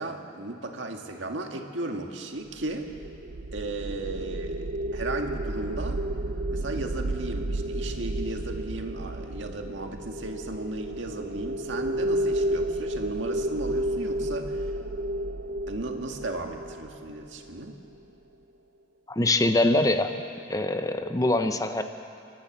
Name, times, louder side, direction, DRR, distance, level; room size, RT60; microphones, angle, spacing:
voice 1, 0.0-2.9 3.5-6.0 6.5-14.7 15.7-17.7, right 2 dB, 85° right, 3 dB, 1.8 m, -35 dB
sound 1, 2.6-17.8, right 1 dB, 65° right, 0.8 m, -31 dB
voice 2, 19.1-20.1 20.5-21.8, left 2 dB, 20° left, 7 dB, 0.8 m, -23 dB
29.5 x 12.0 x 7.4 m, 2.6 s
head